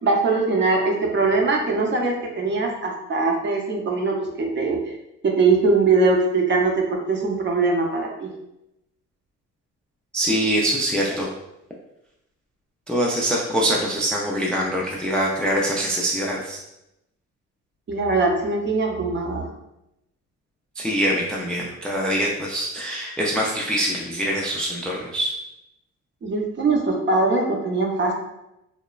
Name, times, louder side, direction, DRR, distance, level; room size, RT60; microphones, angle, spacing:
voice 1, 0.0-4.8 5.2-8.3 17.9-19.4 26.2-28.1, right 3 dB, 40° right, 0 dB, 0.6 m, -21 dB
voice 2, 10.1-11.3 12.9-16.6 20.8-25.3, equal, 5° left, -3 dB, 0.3 m, -24 dB
3.0 x 2.1 x 2.3 m, 0.87 s
cardioid pair, 90°, 30 cm